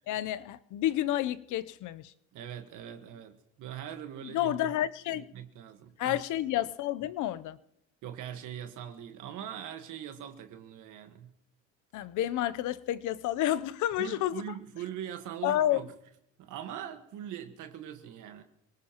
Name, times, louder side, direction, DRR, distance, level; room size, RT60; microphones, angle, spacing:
voice 1, 0.1-2.1 4.2-5.3 6.0-7.6 11.9-14.4 15.4-15.8, left 13 dB, 65° left, 0.7 m, -30 dB
voice 2, 2.3-4.7 5.1-6.2 8.0-11.3 14.0-15.9 16.4-18.4, right 10 dB, 70° right, 1.5 m, -42 dB
25.5 x 18.5 x 3.0 m
cardioid pair, 100°, 32 cm